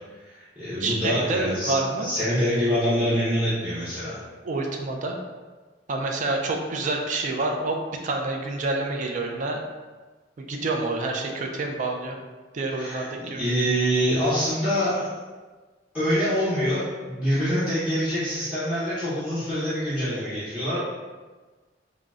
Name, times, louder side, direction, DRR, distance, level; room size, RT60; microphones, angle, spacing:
voice 1, 0.2-4.2 12.7-13.1 13.4-15.0 15.9-20.8, equal, 5° right, -13 dB, 0.8 m, -25 dB
voice 2, 0.8-2.1 4.4-5.2 5.9-7.8 8.0-9.6 10.4-12.2 12.5-13.4, right 2 dB, 45° right, 2 dB, 0.3 m, -28 dB
3.7 x 2.0 x 2.3 m, 1.3 s
head